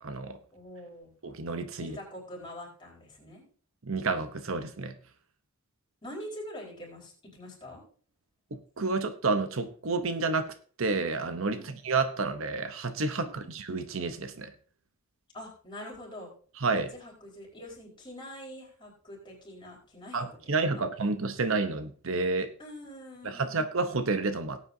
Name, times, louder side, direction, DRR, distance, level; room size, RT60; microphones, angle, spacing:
voice 1, 0.0-0.4 1.2-2.0 3.8-5.0 8.5-14.5 16.6-16.9 20.1-22.5 23.2-24.6, right 3 dB, 65° right, 9 dB, 0.9 m, -30 dB
voice 2, 0.5-1.1 1.8-3.4 6.0-7.8 11.4-11.8 13.1-13.5 15.3-16.3 16.9-20.8 22.6-23.6, equal, 20° left, -2 dB, 4.4 m, -45 dB
18.0 x 8.6 x 2.7 m, 0.43 s
head